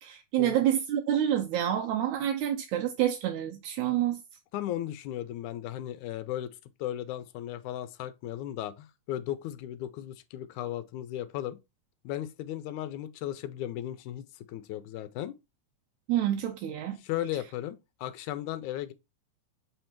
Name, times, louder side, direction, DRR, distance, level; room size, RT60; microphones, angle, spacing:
voice 1, 0.0-4.2 16.1-17.0, right 11 dB, 80° right, 2.1 m, -28 dB
voice 2, 4.5-11.6 12.0-15.4 17.0-18.9, left 12 dB, 80° left, 2.0 m, -36 dB
7.7 x 3.3 x 4.4 m
omnidirectional pair, 3.6 m